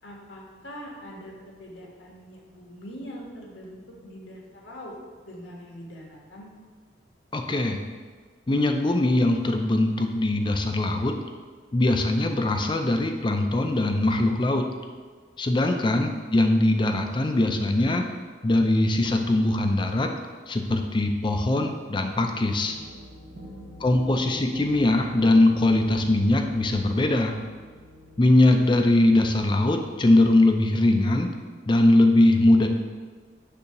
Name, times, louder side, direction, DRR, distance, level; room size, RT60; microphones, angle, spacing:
voice 1, 0.0-4.9 5.3-6.5 23.3-24.3, equal, 85° left, -2 dB, 1.5 m, -43 dB
voice 2, 7.3-7.8 8.5-11.1 11.7-14.7 15.4-18.1 18.4-20.1 20.5-22.8 23.8-27.3 28.2-31.3 31.7-32.7, left 1 dB, 25° left, 4 dB, 0.4 m, -21 dB
sound 1, 22.0-30.5, equal, 35° right, 0.8 m, -46 dB
6.7 x 2.8 x 5.8 m, 1.5 s
head